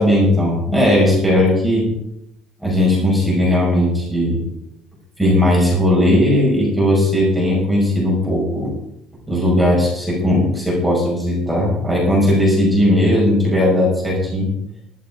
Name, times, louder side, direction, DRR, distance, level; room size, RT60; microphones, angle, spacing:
voice 1, 0.0-1.9 2.6-4.4 5.2-8.7 9.3-14.5, left 1 dB, 5° right, -4 dB, 5.6 m, -17 dB
13.0 x 12.5 x 5.0 m, 0.79 s
cardioid pair, 180°, 0 cm